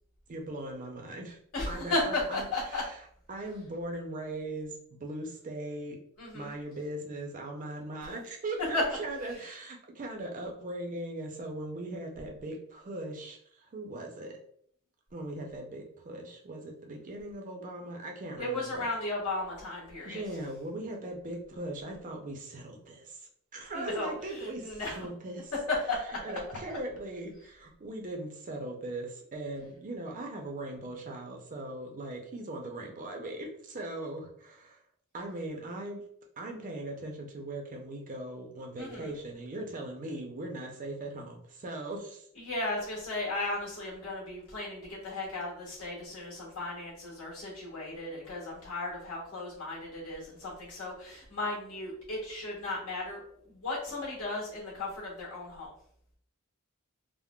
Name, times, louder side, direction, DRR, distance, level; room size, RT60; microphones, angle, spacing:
voice 1, 0.3-1.4 1.7-3.0 3.3-6.0 6.3-14.4 15.1-18.9 20.0-25.5 26.2-34.8 35.1-36.0 36.4-42.3, right 1 dB, 40° right, 2 dB, 0.5 m, -39 dB
voice 2, 1.5-2.8 6.2-6.5 8.7-8.8 18.4-20.2 23.7-24.1 24.6-25.0 25.7-26.0 38.8-39.1 42.4-53.2 53.5-55.7, left 2 dB, 80° left, -5 dB, 1.4 m, -35 dB
3.6 x 2.0 x 2.2 m, 0.65 s
head